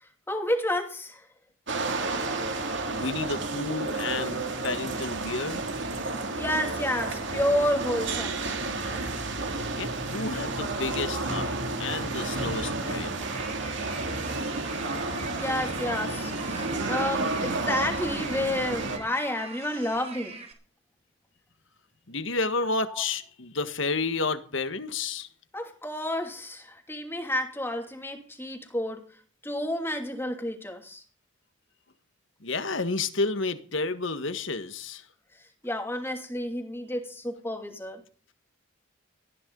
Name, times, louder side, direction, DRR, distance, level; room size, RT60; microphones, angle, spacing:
voice 1, 0.3-1.2 6.4-8.5 15.3-20.4 22.9-23.0 25.5-29.0 29.4-31.0 35.6-38.0, left 1 dB, 10° left, 2.6 m, -30 dB
sound 1, 1.7-19.0, right 3 dB, 55° right, 2.8 m, -31 dB
voice 2, 2.9-5.7 9.8-13.2 22.1-25.3 32.4-35.0, left 3 dB, 60° left, 1.6 m, -31 dB
sound 2, 13.2-20.5, right 4 dB, 30° right, 4.0 m, -42 dB
19.0 x 14.0 x 4.0 m
head